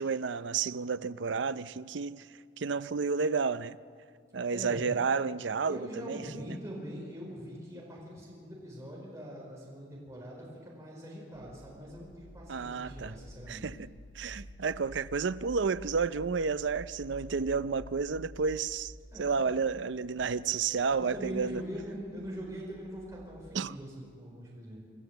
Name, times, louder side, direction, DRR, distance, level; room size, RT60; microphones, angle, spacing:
voice 1, 0.0-2.3 2.6-3.8 4.3-6.2 12.5-13.1 13.5-13.9 14.1-21.6 23.5-23.8, right 5 dB, 75° right, 0.5 m, -31 dB
voice 2, 4.5-4.8 5.6-13.6 19.1-19.3 21.0-24.8, equal, 15° right, 4.4 m, -42 dB
sound 1, 11.3-23.5, left 1 dB, 70° left, 2.5 m, -51 dB
26.0 x 13.0 x 8.0 m
head